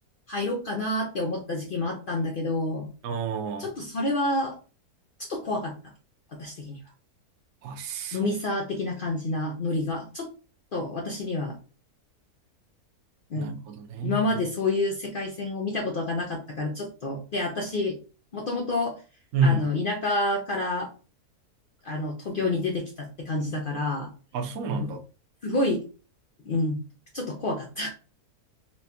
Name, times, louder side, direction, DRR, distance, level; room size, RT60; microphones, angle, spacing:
voice 1, 0.3-2.9 3.6-4.6 5.2-5.7 6.3-6.8 8.1-10.3 10.7-11.6 13.3-13.6 14.0-18.0 18.3-19.0 19.4-20.9 21.8-24.1 24.7-24.9 25.4-25.8 26.5-26.8 27.1-27.9, left 2 dB, 85° left, 0.4 m, -28 dB
voice 2, 3.0-3.7 7.6-8.3 13.4-14.4 19.3-19.7 24.3-25.0, right 3 dB, 65° right, 1.1 m, -28 dB
4.3 x 2.2 x 2.7 m
omnidirectional pair, 1.7 m